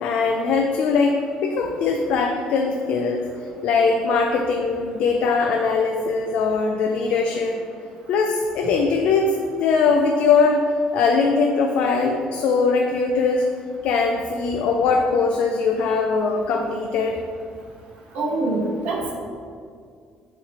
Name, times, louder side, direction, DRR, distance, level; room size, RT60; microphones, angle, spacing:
voice 1, 0.0-3.3 3.6-7.6 8.1-10.7 10.9-13.4 13.8-17.2, left 4 dB, 65° left, 2 dB, 0.4 m, -21 dB
voice 2, 18.1-19.1, right 2 dB, 65° right, -2 dB, 1.2 m, -24 dB
7.4 x 3.2 x 4.3 m, 2.2 s
cardioid pair, 170°, 2 cm